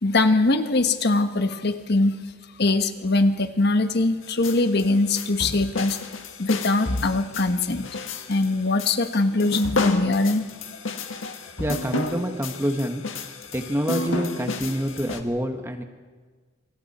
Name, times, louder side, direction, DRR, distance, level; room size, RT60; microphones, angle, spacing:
voice 1, 0.0-2.2 2.6-6.0 6.4-7.9 8.3-10.5 11.1-11.4, left 2 dB, 55° left, 8 dB, 1.2 m, -22 dB
sound 1, 4.2-15.2, left 3 dB, 85° left, 1.7 m, -30 dB
voice 2, 11.6-13.0 13.5-15.8, equal, 15° right, 5 dB, 1.4 m, -27 dB
27.5 x 25.5 x 4.3 m, 1.4 s
head